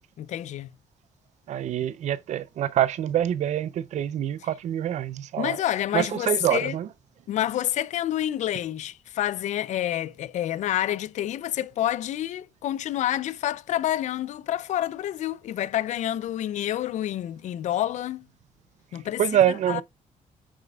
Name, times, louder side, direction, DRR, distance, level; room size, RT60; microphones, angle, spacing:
voice 1, 0.2-0.7 5.4-6.8 7.3-18.3 18.9-19.2 19.7-19.8, left 12 dB, 60° left, 0.4 m, -28 dB
voice 2, 1.5-5.6 5.9-6.9 19.2-19.8, right 10 dB, 60° right, 0.5 m, -25 dB
8.8 x 6.6 x 2.3 m
cardioid pair, 170°, 14 cm